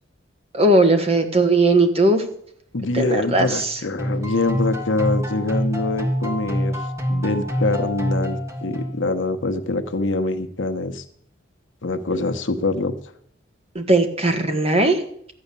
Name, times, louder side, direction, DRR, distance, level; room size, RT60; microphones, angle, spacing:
voice 1, 0.5-2.2 2.9-3.8 13.7-15.0, right 2 dB, 30° right, 6 dB, 1.5 m, -18 dB
voice 2, 2.7-6.8 7.1-11.0 11.8-12.9, left 2 dB, 70° left, 8 dB, 1.1 m, -24 dB
sound 1, 4.0-9.2, equal, 15° right, 1.7 m, -26 dB
13.0 x 8.7 x 6.9 m, 0.67 s
head